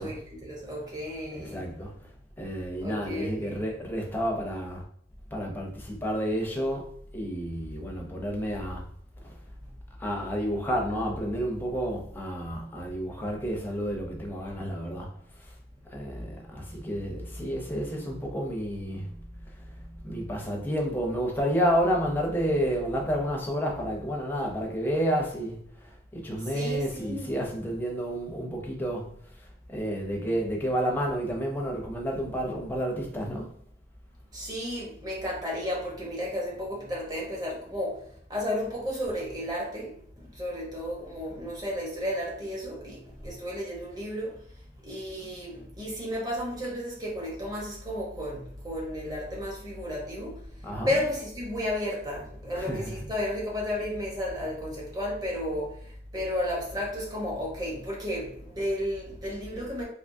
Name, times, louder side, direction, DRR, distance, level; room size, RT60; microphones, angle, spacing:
voice 1, 0.0-1.7 2.8-3.7 26.4-27.4 34.3-44.4 44.8-50.4 50.9-59.8, left 1 dB, 20° right, 0.9 m, -33 dB
voice 2, 1.3-1.9 2.4-4.8 5.3-8.8 9.2-9.3 10.0-15.1 15.9-19.1 20.0-25.6 26.1-29.1 29.7-33.5 50.6-51.0 52.5-53.1, equal, 10° left, 0.6 m, -30 dB
3.4 x 2.9 x 2.6 m
head